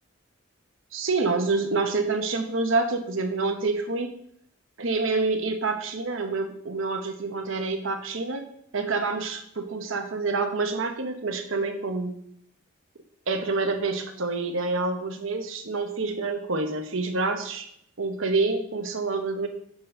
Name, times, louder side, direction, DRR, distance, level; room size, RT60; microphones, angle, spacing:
voice 1, 0.9-4.1 4.8-8.5 8.7-12.1 13.3-17.7 18.0-19.5, right 3 dB, 80° right, 6 dB, 1.0 m, -27 dB
8.3 x 4.2 x 5.1 m, 0.68 s
head